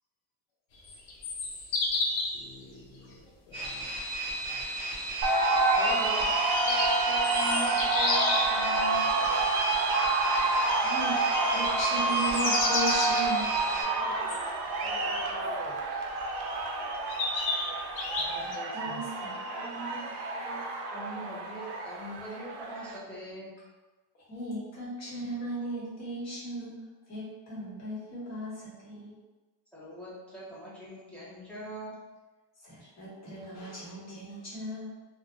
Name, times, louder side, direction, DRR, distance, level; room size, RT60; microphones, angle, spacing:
sound 1, 0.8-2.4 6.3-8.6 12.0-13.2 14.3-14.4 16.2-16.3 17.1-18.6, left 3 dB, 55° left, 0.6 m, -30 dB
voice 1, 1.4-1.8 2.3-3.9 4.5-4.6, left 2 dB, 75° left, -2 dB, 0.9 m, -53 dB
sound 2, 3.5-13.8, right 1 dB, 15° right, 1.1 m, -34 dB
sound 3, 5.2-23.0, right 3 dB, 60° right, 0.5 m, -29 dB
voice 2, 5.7-6.2 6.6-9.1 19.5-20.6 20.9-23.5 29.7-32.0, right 1 dB, 5° left, -9 dB, 0.5 m, -42 dB
voice 3, 10.5-15.9 18.0-19.5 24.1-29.2 32.6-35.0, right 1 dB, 35° left, -7 dB, 1.2 m, -38 dB
2.2 x 2.2 x 2.9 m, 1.2 s
cardioid pair, 145°, 44 cm